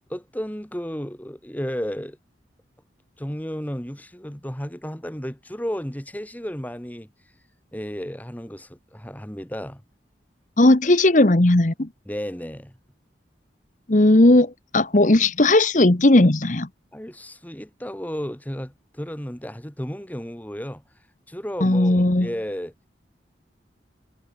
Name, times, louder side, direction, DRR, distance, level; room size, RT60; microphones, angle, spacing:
voice 1, 0.1-2.2 3.2-7.1 7.7-9.8 12.1-12.8 16.9-20.8 21.3-22.7, equal, 10° left, 2.1 m, -33 dB
voice 2, 10.6-11.9 13.9-16.7 21.6-22.3, left 1 dB, 45° left, 1.2 m, -17 dB
head